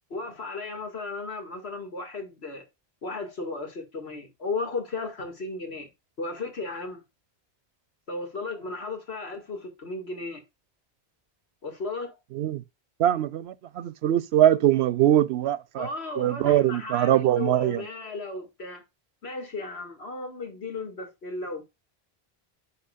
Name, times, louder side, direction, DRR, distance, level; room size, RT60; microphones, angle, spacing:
voice 1, 0.1-2.6 3.0-5.9 6.2-7.0 8.1-10.4 11.6-12.1 15.8-18.8 19.2-21.6, left 3 dB, 80° left, 2.4 m, -35 dB
voice 2, 13.0-15.9 16.2-17.8, right 12 dB, 80° right, 0.8 m, -22 dB
9.8 x 5.0 x 2.4 m
omnidirectional pair, 1.1 m